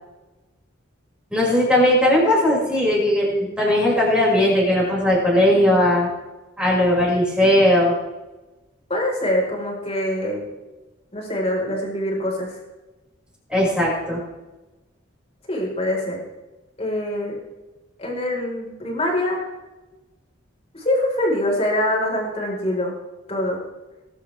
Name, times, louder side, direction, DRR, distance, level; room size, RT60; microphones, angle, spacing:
voice 1, 1.3-6.1 6.6-7.9 13.5-14.2, left 1 dB, 5° right, -6 dB, 6.2 m, -18 dB
voice 2, 8.9-10.4 11.1-12.5 15.5-16.2 16.8-17.4 18.0-19.4 20.7-22.9 23.3-23.6, left 1 dB, 30° left, -2 dB, 4.8 m, -24 dB
21.0 x 11.5 x 3.5 m, 1.1 s
head